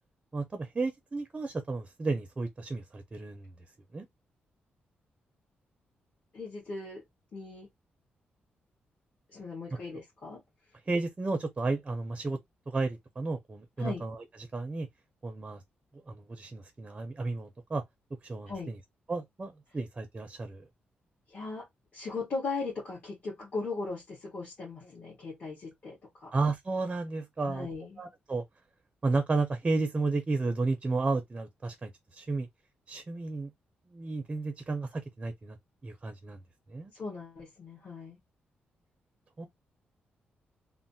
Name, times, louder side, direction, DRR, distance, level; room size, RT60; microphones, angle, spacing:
voice 1, 0.3-3.5 3.9-4.1 10.9-12.4 12.7-14.2 14.5-14.9 15.2-15.6 16.1-17.8 18.2-18.8 19.1-20.6 26.3-27.7 28.0-28.4 29.0-32.5 32.9-33.5 33.9-35.6 35.8-36.4 36.7-36.9 39.4-39.5, right 3 dB, 25° right, 0.5 m, -32 dB
voice 2, 6.3-7.0 7.3-7.7 9.3-10.4 13.8-14.1 18.5-18.7 21.3-21.7 21.9-26.3 27.4-28.0 36.9-38.2, left 3 dB, 45° left, 1.6 m, -38 dB
3.1 x 2.0 x 2.6 m
wide cardioid pair, 140°, 4 cm